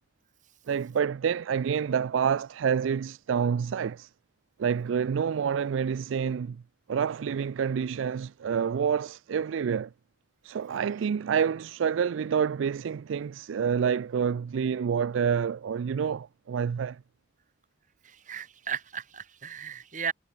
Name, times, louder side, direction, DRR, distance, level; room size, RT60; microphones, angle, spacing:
voice 1, 0.7-4.1 4.6-6.6 6.9-9.9 10.4-17.0, right 7 dB, 85° right, 0.4 m, -28 dB
voice 2, 18.0-20.1, right 7 dB, 40° right, 3.0 m, -35 dB
head